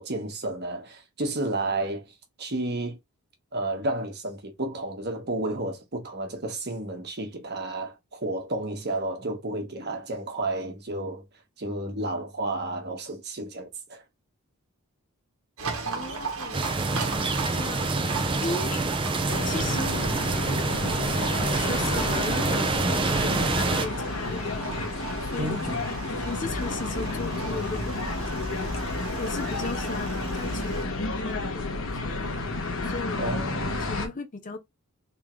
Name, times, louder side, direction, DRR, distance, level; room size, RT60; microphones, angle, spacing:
voice 1, 0.0-2.0 2.4-3.0 3.5-11.2 11.6-14.0 25.4-25.7 33.2-33.8, right 2 dB, 45° right, 1.4 m, -31 dB
Livestock farm animals working animals, 15.6-30.8, right 4 dB, 70° right, 1.3 m, -37 dB
voice 2, 15.8-16.6 17.5-18.9 19.4-20.1 21.2-25.8 26.2-28.4 29.1-32.6 32.9-33.4 33.8-34.6, left 3 dB, 35° left, 0.6 m, -37 dB
sound 1, 16.5-23.9, right 3 dB, 25° right, 0.5 m, -27 dB
sound 2, 19.3-34.1, left 3 dB, 60° left, 1.2 m, -31 dB
3.7 x 3.6 x 3.1 m
head